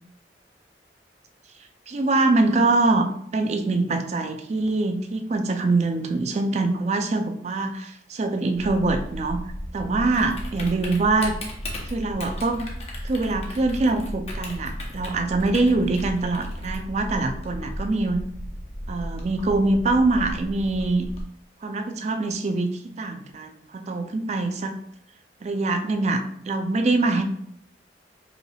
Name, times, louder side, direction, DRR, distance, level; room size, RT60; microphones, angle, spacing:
voice 1, 1.9-9.4 9.7-11.4 11.8-12.6 13.0-18.3 18.9-21.1 21.6-24.8 25.4-27.2, right 2 dB, 40° right, 6 dB, 0.4 m, -24 dB
Typing, 8.5-21.2, equal, 35° left, 0.7 m, -35 dB
4.9 x 3.3 x 2.3 m, 0.69 s
head